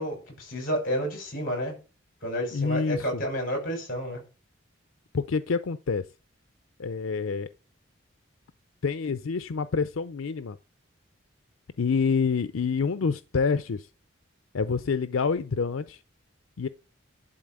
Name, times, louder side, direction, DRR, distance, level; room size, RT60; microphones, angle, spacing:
voice 1, 0.0-1.8 2.2-4.2, equal, 45° left, 6.2 m, -30 dB
voice 2, 2.5-3.2 5.1-6.1 6.8-7.5 8.8-10.6 11.8-13.9 14.5-16.0 16.6-16.7, left 5 dB, 85° left, 0.5 m, -27 dB
11.5 x 4.1 x 7.6 m
head